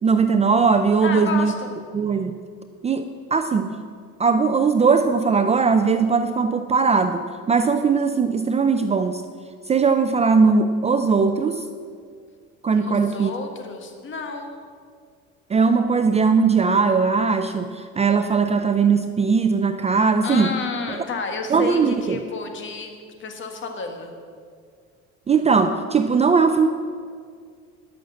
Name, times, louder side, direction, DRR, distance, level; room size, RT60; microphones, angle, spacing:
voice 1, 0.0-1.5 1.9-2.4 2.8-3.8 4.2-9.2 9.7-11.7 12.6-13.3 15.5-20.5 20.9-21.0 21.5-22.2 25.3-26.7, right 5 dB, 20° right, 9 dB, 0.4 m, -19 dB
voice 2, 1.0-1.7 12.7-14.5 20.2-22.9 23.2-24.1, left 4 dB, 40° left, 4 dB, 1.7 m, -31 dB
11.0 x 6.5 x 7.8 m, 2.1 s
supercardioid pair, 110°, 30 cm